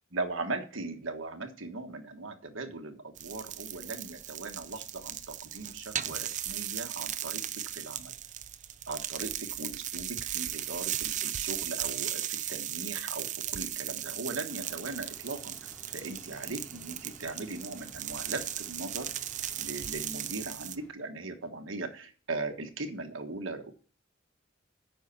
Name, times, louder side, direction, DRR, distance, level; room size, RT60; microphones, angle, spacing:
voice 1, 0.1-7.4 7.7-8.1 8.9-19.1 19.6-23.7, right 3 dB, 75° right, 5 dB, 1.4 m, -39 dB
sound 1, 3.2-20.8, right 11 dB, 40° right, 0.5 m, -37 dB
sound 2, 14.5-20.9, equal, 5° left, 2.5 m, -55 dB
9.3 x 5.6 x 7.0 m, 0.40 s
head